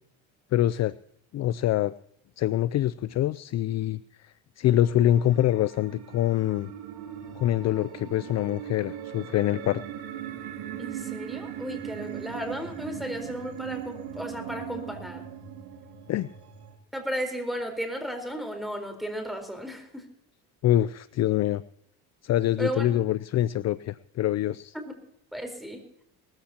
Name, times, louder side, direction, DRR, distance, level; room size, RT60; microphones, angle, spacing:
voice 1, 0.5-1.0 1.3-1.9 2.4-6.7 7.4-9.8 16.1-16.3 20.6-21.6 22.2-24.7, left 13 dB, 45° left, 17 dB, 0.4 m, -25 dB
sound 1, 4.8-16.8, right 9 dB, 75° right, 2.2 m, -39 dB
voice 2, 10.8-15.2 16.9-20.0 22.6-22.9 24.7-25.0 25.3-25.8, equal, ahead, 5 dB, 4.2 m, -34 dB
20.0 x 14.5 x 2.9 m, 0.70 s
supercardioid pair, 85°, 39 cm